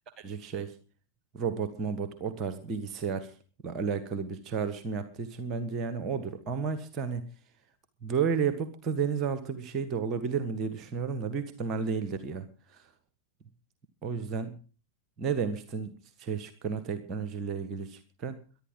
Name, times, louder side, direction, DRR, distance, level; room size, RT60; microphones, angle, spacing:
voice 1, 0.2-0.7 1.3-3.3 3.6-7.3 8.0-12.5 12.7-12.8 14.0-14.5 15.2-15.9 16.2-18.4, right 6 dB, 30° right, 11 dB, 1.5 m, -32 dB
23.0 x 11.5 x 3.8 m, 0.37 s
figure-of-eight pair, 90°, 0 cm